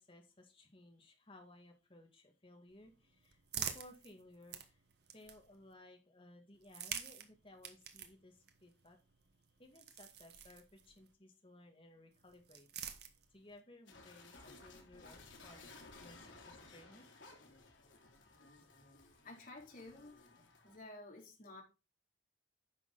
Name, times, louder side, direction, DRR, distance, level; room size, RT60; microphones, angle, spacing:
voice 1, 0.0-4.8 5.1-9.0 9.6-15.7 16.0-17.1, left 1 dB, 30° left, 2.1 m, -60 dB
sound 1, 2.7-5.7 6.5-11.1 12.1-13.6, right 8 dB, 60° right, 1.3 m, -48 dB
sound 2, 13.9-20.8, left 3 dB, 85° left, 3.1 m, -58 dB
voice 2, 19.2-21.6, left 2 dB, 45° left, 3.4 m, -53 dB
10.0 x 6.2 x 4.1 m
head